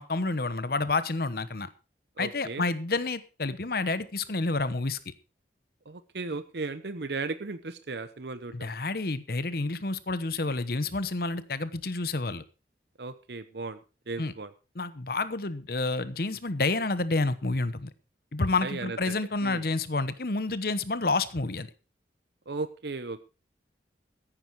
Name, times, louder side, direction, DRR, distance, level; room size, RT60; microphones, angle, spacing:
voice 1, 0.0-1.7 2.2-5.0 8.5-12.4 14.2-14.3 14.7-17.9 18.3-21.7, left 3 dB, 55° left, 14 dB, 1.0 m, -29 dB
voice 2, 2.2-2.6 5.9-8.7 13.0-13.8 14.1-14.5 18.6-19.0 19.4-19.6 22.5-23.2, right 3 dB, 65° right, 12 dB, 0.8 m, -36 dB
14.5 x 9.7 x 4.6 m, 0.33 s
head